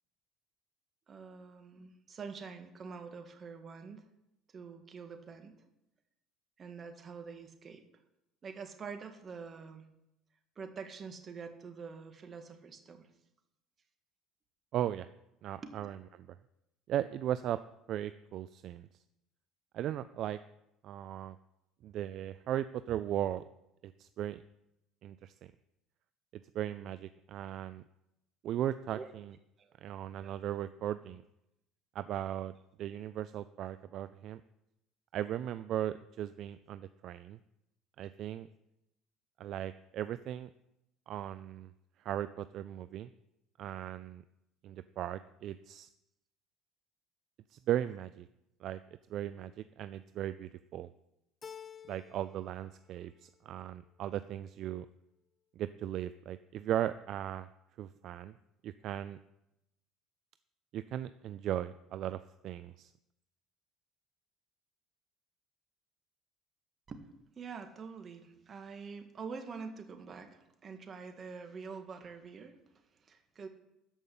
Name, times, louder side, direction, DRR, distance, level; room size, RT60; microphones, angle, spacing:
voice 1, 1.1-4.1 4.5-5.7 6.6-7.8 8.4-9.9 10.6-13.1 15.6-15.7 28.9-29.1 29.6-29.7 30.2-30.4 66.9-67.0 67.4-73.5, right 5 dB, 35° right, 6 dB, 1.8 m, -46 dB
voice 2, 14.7-15.1 15.4-16.4 16.9-17.6 17.9-18.9 19.7-20.4 20.8-21.4 21.8-23.4 23.8-24.4 25.0-25.5 26.5-27.8 28.4-29.3 29.8-31.2 31.9-34.4 35.1-37.4 38.0-38.5 39.4-40.5 41.1-41.7 42.0-43.1 43.6-44.2 44.6-45.9 47.5-48.3 48.6-48.8 49.1-50.9 51.9-54.9 55.6-57.5 57.8-58.3 58.6-59.2 60.7-62.9, right 11 dB, 60° right, 13 dB, 0.4 m, -37 dB
Keyboard (musical), 51.4-52.5 52.8-53.6, left 8 dB, 30° left, 0.4 m, -51 dB
13.5 x 5.4 x 8.5 m, 0.84 s
supercardioid pair, 100°, 0 cm